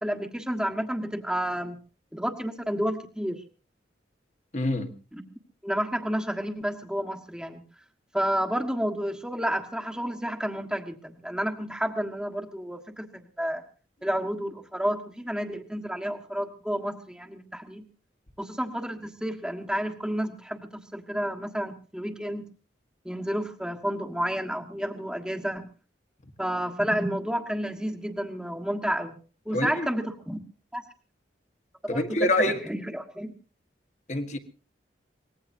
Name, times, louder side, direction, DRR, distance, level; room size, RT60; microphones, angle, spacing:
voice 1, 0.0-1.8 2.1-3.4 5.6-7.6 8.1-13.6 14.0-17.8 18.4-22.4 23.0-25.7 26.4-29.2 29.4-30.4 30.7-30.8 31.8-33.3, equal, 5° right, 1.5 m, -30 dB
voice 2, 4.5-4.9 29.5-29.9 31.9-32.6 34.1-34.4, left 1 dB, 40° left, 1.5 m, -26 dB
24.0 x 20.0 x 2.7 m
head